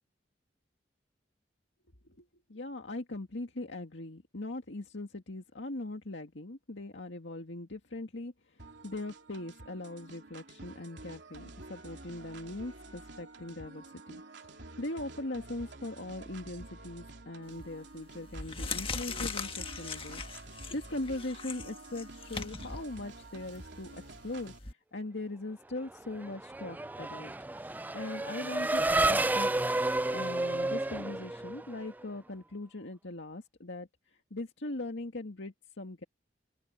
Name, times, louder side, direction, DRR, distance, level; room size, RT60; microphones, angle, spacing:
voice 1, 2.1-20.2 20.5-27.3 27.9-29.7 30.1-33.9 34.3-36.0, left 2 dB, 85° left, 2.0 m, -40 dB
sound 1, 8.6-24.6, right 2 dB, 75° right, 3.1 m, -49 dB
sound 2, 17.5-17.8 18.2-24.7, left 4 dB, 30° left, 1.5 m, -40 dB
Race car auto racing / Accelerating revving vroom, 26.0-32.0, right 2 dB, 10° right, 0.4 m, -31 dB
open air
head